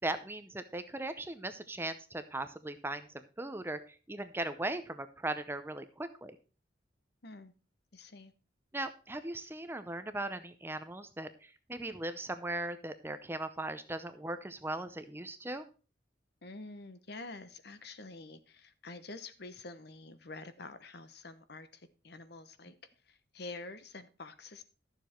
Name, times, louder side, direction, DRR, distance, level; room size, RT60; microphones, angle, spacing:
voice 1, 0.0-6.4 8.7-15.6, right 2 dB, 10° right, 10 dB, 0.6 m, -38 dB
voice 2, 7.2-7.5 7.9-8.3 16.4-22.8 23.0-24.6, left 3 dB, 55° left, 11 dB, 1.0 m, -47 dB
12.5 x 7.1 x 4.4 m, 0.35 s
head